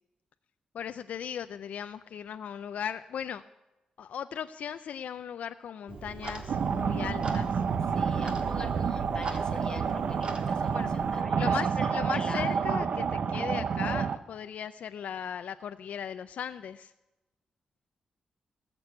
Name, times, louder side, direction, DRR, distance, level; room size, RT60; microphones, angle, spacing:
voice 1, 0.7-3.4 4.0-7.6 10.7-10.9 11.4-16.9, left 8 dB, 80° left, 10 dB, 0.4 m, -37 dB
Clock, 5.9-11.2, right 4 dB, 45° right, 1.6 m, -40 dB
sound 1, 6.5-14.2, right 6 dB, 65° right, 0.7 m, -29 dB
voice 2, 7.9-12.7, left 3 dB, 35° left, 5 dB, 1.8 m, -44 dB
20.0 x 6.8 x 8.1 m, 1.0 s
wide cardioid pair, 135°, 2 cm